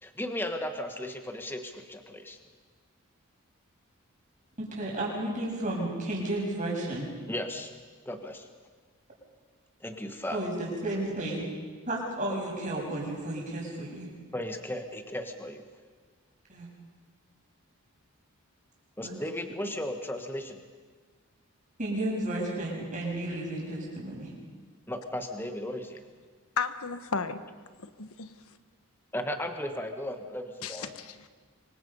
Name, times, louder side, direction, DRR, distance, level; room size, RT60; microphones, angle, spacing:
voice 1, 0.0-2.4 7.3-7.7 8.0-8.5 9.8-10.4 14.3-15.6 19.0-20.6 24.9-26.0 29.1-30.9, left 1 dB, 10° left, 6 dB, 1.2 m, -35 dB
voice 2, 4.6-7.1 10.3-11.4 11.9-14.1 16.5-16.7 19.0-19.2 21.8-24.3, right 1 dB, 35° right, -3 dB, 6.7 m, -32 dB
voice 3, 26.6-27.4 28.0-28.3 30.6-31.3, left 5 dB, 75° left, 11 dB, 1.2 m, -33 dB
26.0 x 24.0 x 5.4 m, 1.5 s
head